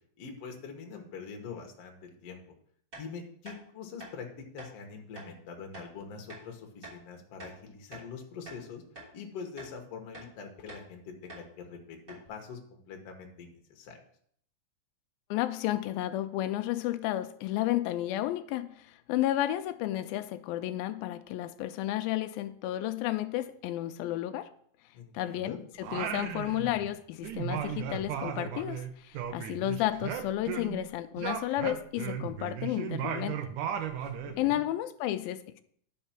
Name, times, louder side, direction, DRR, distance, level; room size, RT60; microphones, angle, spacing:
voice 1, 0.2-2.4 3.0-8.8 9.1-14.0 24.9-25.6 33.9-34.0 34.3-34.6, left 5 dB, 55° left, 3 dB, 2.1 m, -44 dB
sound 1, 2.9-3.1 3.4-3.6 4.0-4.1 4.6-4.7 5.1-5.3 5.7-5.9 6.3-6.4 6.8-7.0 7.4-8.1 8.4-8.6 8.9-9.1 9.6-9.7 10.1-10.3 10.7-10.9 11.3-11.5 11.7-11.8 12.1-12.3, right 2 dB, 25° right, 3.4 m, -46 dB
voice 2, 15.3-24.5 25.1-33.4 34.4-35.6, left 14 dB, 85° left, 10 dB, 2.4 m, -32 dB
Singing, 25.8-27.0 27.2-30.9 31.2-34.4, right 9 dB, 75° right, 2.1 m, -36 dB
10.5 x 5.5 x 5.9 m, 0.64 s
omnidirectional pair, 4.1 m